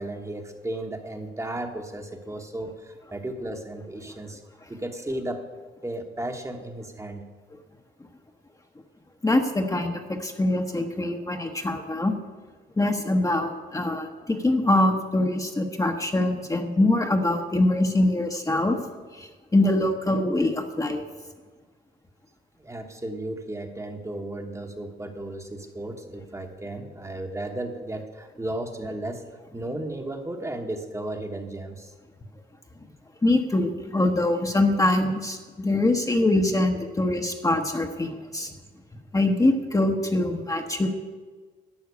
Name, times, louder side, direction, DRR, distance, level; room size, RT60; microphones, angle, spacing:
voice 1, 0.0-4.4 4.7-5.4 5.8-7.3 22.6-29.3 29.5-31.9, right 1 dB, 15° right, 4 dB, 1.2 m, -34 dB
voice 2, 9.2-12.1 12.8-18.8 19.1-21.0 33.2-38.5 39.1-40.9, left 1 dB, 15° left, 4 dB, 1.0 m, -24 dB
11.5 x 5.7 x 8.3 m, 1.4 s
cardioid pair, 90°, 20 cm